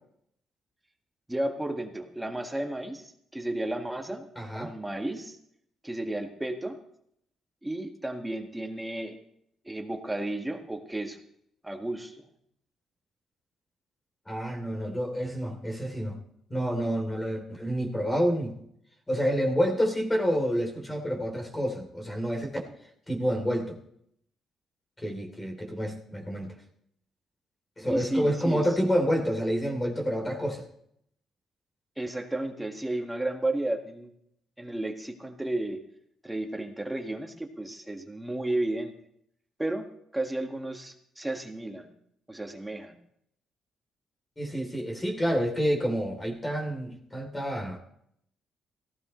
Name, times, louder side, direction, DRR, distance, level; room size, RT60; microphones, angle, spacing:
voice 1, 1.3-4.3 4.5-5.4 5.8-6.8 7.6-9.2 9.7-11.2 11.6-12.3 27.9-28.7 32.0-34.1 34.6-35.8 36.2-38.9 39.6-39.9 40.1-41.9 42.3-43.0, right 1 dB, 10° right, 4 dB, 1.9 m, -33 dB
voice 2, 4.4-4.7 14.3-16.2 16.5-18.6 19.1-22.7 23.1-23.8 25.0-26.5 27.8-30.7 44.4-47.8, equal, 15° left, 2 dB, 3.4 m, -28 dB
17.5 x 15.5 x 3.3 m, 0.72 s
cardioid pair, 90°, 0 cm